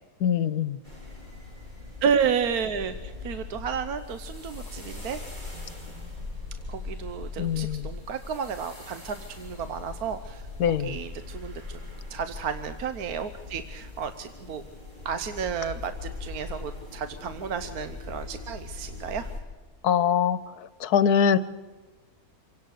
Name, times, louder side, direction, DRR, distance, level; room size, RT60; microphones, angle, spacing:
voice 1, 0.2-0.8 7.4-7.9 10.6-11.0 19.8-20.4 20.8-21.4, left 8 dB, 85° left, 15 dB, 1.4 m, -23 dB
sound 1, 0.8-19.4, left 3 dB, 30° right, 4.5 m, -40 dB
voice 2, 2.0-5.2 6.7-10.4 10.7-11.8 12.1-14.6 15.0-19.3, right 7 dB, 75° right, 10 dB, 1.4 m, -31 dB
27.0 x 17.0 x 6.6 m, 1.3 s
omnidirectional pair, 1.6 m